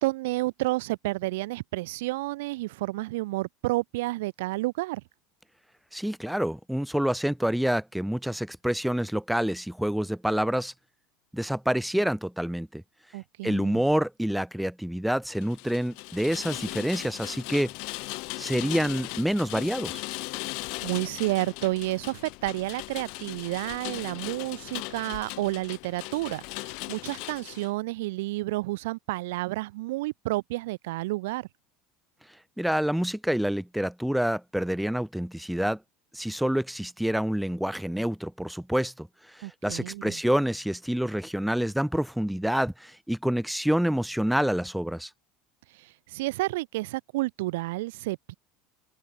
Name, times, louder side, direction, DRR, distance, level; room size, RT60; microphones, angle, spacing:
voice 1, 0.0-5.0 13.1-13.8 20.8-31.5 39.4-40.2 45.8-48.3, right 20 dB, 85° right, 5.8 m, -30 dB
voice 2, 5.9-10.7 11.3-12.8 13.4-17.7 18.4-20.0 32.6-35.8 36.1-39.1 39.3-45.1, equal, ahead, 2.0 m, -27 dB
Rain, 15.3-27.7, left 30 dB, 65° left, 7.1 m, -38 dB
supercardioid pair, 135°, 0 cm